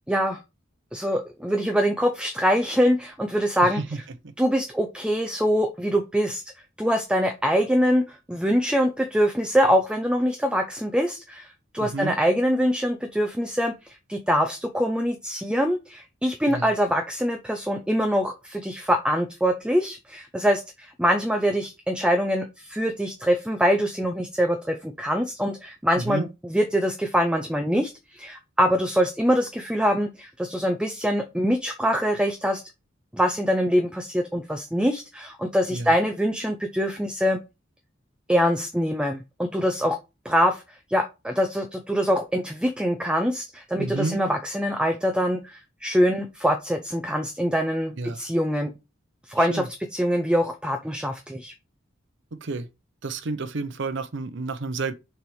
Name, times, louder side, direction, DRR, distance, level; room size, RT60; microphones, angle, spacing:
voice 1, 0.1-0.4 0.9-3.8 4.4-6.4 6.8-11.5 11.7-32.6 33.1-37.4 38.3-40.0 40.2-40.6 40.9-48.7 49.3-51.5, equal, 5° right, 0.6 m, -24 dB
voice 2, 3.6-4.0 11.8-12.1 16.5-16.7 26.0-26.3 35.7-35.9 43.8-44.2 48.0-48.2 49.4-49.7 52.3-52.7 53.0-54.9, right 3 dB, 65° right, 0.8 m, -30 dB
6.5 x 3.5 x 4.6 m
head